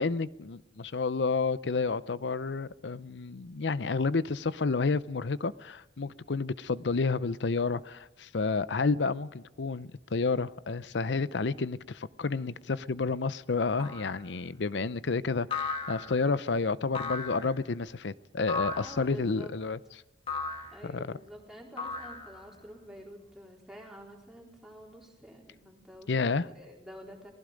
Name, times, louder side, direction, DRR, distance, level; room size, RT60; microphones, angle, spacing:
voice 1, 0.0-19.8 20.8-21.2 26.1-26.5, left 4 dB, 75° left, 0.6 m, -30 dB
sound 1, 13.8-14.2 15.5-16.3 16.9-17.5 18.5-19.0 20.3-20.8 21.8-22.5, left 4 dB, 30° left, 2.0 m, -35 dB
voice 2, 18.7-19.6 20.7-27.3, equal, 5° right, 4.1 m, -48 dB
27.5 x 19.0 x 5.2 m
head